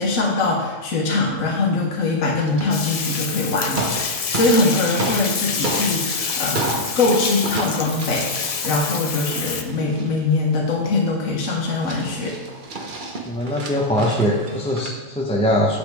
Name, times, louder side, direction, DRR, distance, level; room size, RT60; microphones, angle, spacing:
voice 1, 0.0-12.4, left 3 dB, 80° left, -1 dB, 1.5 m, -22 dB
sound 1, 2.4-3.3 3.6-5.3 5.6-7.2 7.4-11.0 11.4-11.5 11.8-14.9, right 2 dB, 40° right, 1.1 m, -31 dB
Bathtub (filling or washing), 2.7-9.6, left 5 dB, 55° left, 0.4 m, -27 dB
voice 2, 13.3-15.8, equal, 5° left, -2 dB, 0.7 m, -21 dB
8.4 x 8.1 x 3.5 m, 1.2 s
omnidirectional pair, 1.4 m